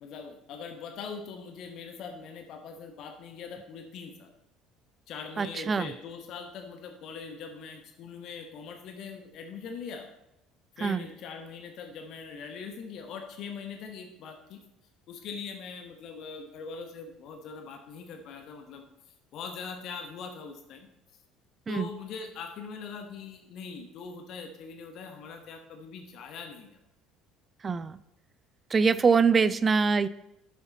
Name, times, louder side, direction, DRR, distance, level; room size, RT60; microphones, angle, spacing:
voice 1, 0.0-4.3 5.1-10.1 10.8-14.6 15.1-18.8 19.3-20.9 21.7-26.8, left 5 dB, 50° left, 5 dB, 0.9 m, -42 dB
voice 2, 5.4-5.9 10.8-11.0 21.7-21.9 27.6-28.0 28.7-30.1, right 5 dB, 30° right, 17 dB, 0.4 m, -24 dB
11.0 x 7.0 x 4.0 m, 0.87 s
figure-of-eight pair, 60°, 0 cm